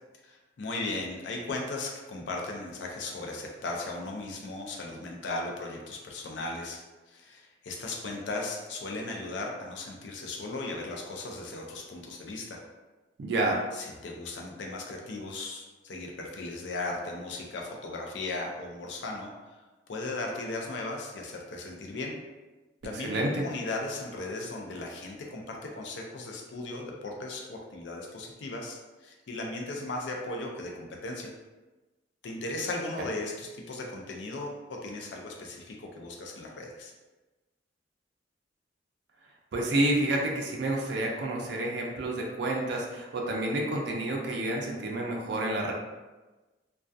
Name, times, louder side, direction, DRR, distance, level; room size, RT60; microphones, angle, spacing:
voice 1, 0.2-6.8 7.1-12.6 13.7-19.3 19.9-22.2 22.8-31.3 32.2-36.9, left 2 dB, 70° left, 0 dB, 0.4 m, -37 dB
voice 2, 13.2-13.7 22.9-23.4 39.5-45.7, right 1 dB, 65° right, -1 dB, 0.4 m, -29 dB
2.2 x 2.2 x 2.5 m, 1.2 s
head